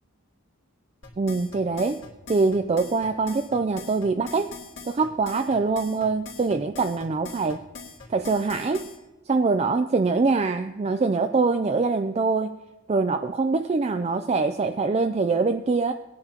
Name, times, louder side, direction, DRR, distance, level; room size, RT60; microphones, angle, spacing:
sound 1, 1.0-9.0, left 4 dB, 60° left, 3.2 m, -42 dB
voice 1, 1.2-2.0 2.3-4.5 4.8-7.6 8.1-8.9 9.3-12.5 12.9-15.9, right 4 dB, 30° right, 8 dB, 0.4 m, -24 dB
19.5 x 10.5 x 2.9 m, 1.1 s
head